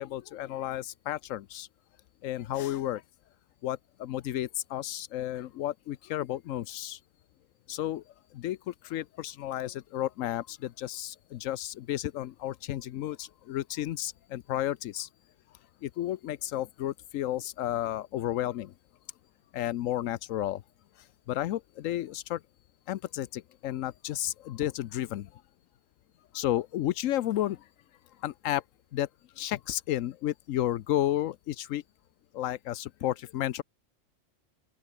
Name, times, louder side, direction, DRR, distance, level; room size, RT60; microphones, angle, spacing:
voice 1, 0.0-1.7 2.2-3.0 3.6-7.0 7.7-8.0 8.3-15.1 15.8-18.7 19.5-20.6 21.0-22.4 22.9-25.4 26.3-27.7 28.2-28.6 28.9-29.1 29.4-31.8 32.3-33.6, left 13 dB, 85° left, 1.0 m, -32 dB
open air
omnidirectional pair, 1.3 m